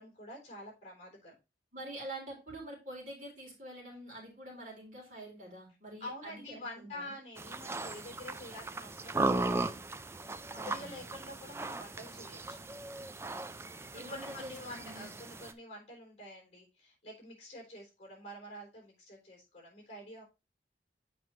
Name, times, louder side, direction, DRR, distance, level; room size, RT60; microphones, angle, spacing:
voice 1, 0.0-1.4 6.0-9.7 10.6-12.6 12.9-13.0 13.9-20.2, left 1 dB, 40° left, 1 dB, 3.6 m, -47 dB
voice 2, 1.7-7.2 10.5-11.0 13.9-15.1, right 1 dB, 45° right, -2 dB, 3.8 m, -46 dB
sound 1, 7.4-15.5, right 2 dB, 15° right, 0.4 m, -37 dB
7.8 x 5.3 x 3.1 m, 0.26 s
head